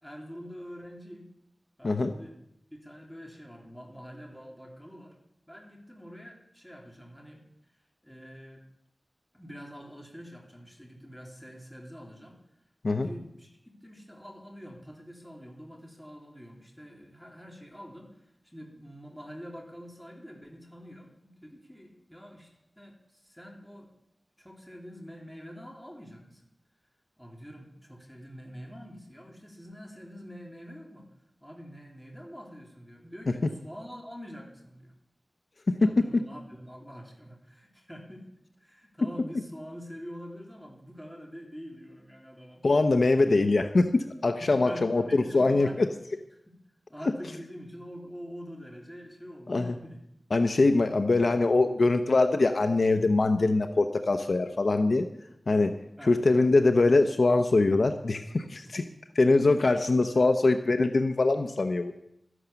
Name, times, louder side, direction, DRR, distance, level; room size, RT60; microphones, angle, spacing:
voice 1, 0.0-1.3 1.8-2.4 2.7-5.2 5.5-7.4 8.0-8.6 9.3-12.4 12.9-22.5 22.8-23.9 24.4-26.4 27.2-31.1 31.4-34.9 35.8-38.3 38.6-42.6 44.4-45.9 46.9-50.0 56.0-56.2 58.6-58.9 60.1-60.2, equal, 5° left, -1 dB, 3.4 m, -45 dB
voice 2, 42.6-45.9 49.5-49.8 50.3-55.1 55.5-55.7 56.1-58.8 59.2-61.9, left 3 dB, 70° left, 7 dB, 0.8 m, -23 dB
13.0 x 11.0 x 6.9 m, 0.79 s
wide cardioid pair, 85°, 0 cm